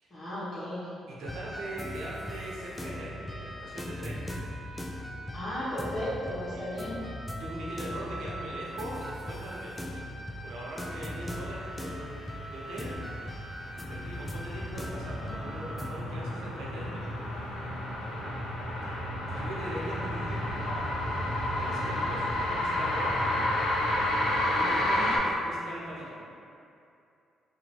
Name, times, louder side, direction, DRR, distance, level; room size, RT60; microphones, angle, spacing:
voice 1, 0.1-0.9 5.3-7.0 24.6-25.1, left 1 dB, 45° left, -13 dB, 1.3 m, -35 dB
voice 2, 1.1-4.2 6.5-6.8 7.2-10.0 10.4-13.0 13.9-17.1 18.8-23.3 24.5-26.3, right 1 dB, 80° right, -5 dB, 0.8 m, -41 dB
sound 1, 1.2-15.9, equal, 5° left, 0.4 m, -39 dB
sound 2, 12.4-25.2, left 1 dB, 90° left, 0.6 m, -31 dB
2.9 x 2.6 x 4.4 m, 2.6 s
cardioid pair, 90°, 0 cm